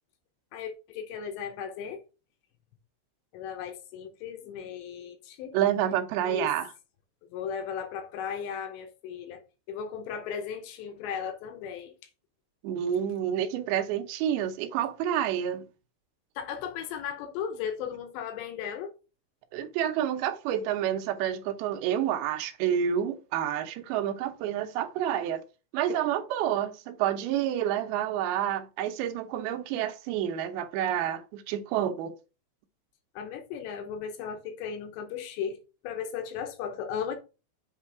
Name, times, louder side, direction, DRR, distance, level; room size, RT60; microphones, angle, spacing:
voice 1, 0.5-2.0 3.3-5.6 6.2-6.6 7.3-11.9 16.4-18.9 33.2-37.2, left 7 dB, 85° left, 3.1 m, -36 dB
voice 2, 5.5-6.7 12.6-15.6 19.5-25.4 25.7-32.1, right 10 dB, 75° right, 2.5 m, -29 dB
7.4 x 3.3 x 4.6 m
omnidirectional pair, 4.9 m